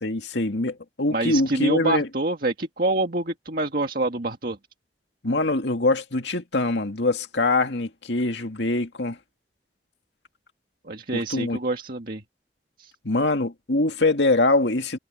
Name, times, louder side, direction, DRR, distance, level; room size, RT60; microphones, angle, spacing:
voice 1, 0.0-2.1 5.2-9.2 11.1-11.6 13.0-15.0, left 2 dB, 80° left, 2.2 m, -23 dB
voice 2, 1.1-4.6 10.8-12.2 12.8-12.9, right 2 dB, 55° right, 1.8 m, -26 dB
head